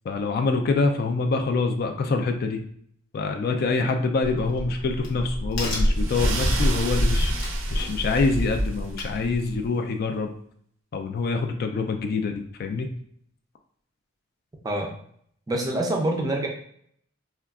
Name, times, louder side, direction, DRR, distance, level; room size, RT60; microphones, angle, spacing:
voice 1, 0.1-2.6 3.1-7.3 7.7-10.3 10.9-12.9, left 3 dB, 50° left, 5 dB, 0.3 m, -25 dB
Crack, 4.2-9.7, equal, 75° left, 0.8 m, -26 dB
sound 1, 5.9-9.0, right 4 dB, 75° right, 0.4 m, -35 dB
voice 2, 15.5-16.5, right 1 dB, 20° right, 2 dB, 0.4 m, -25 dB
3.5 x 2.3 x 2.3 m, 0.65 s
head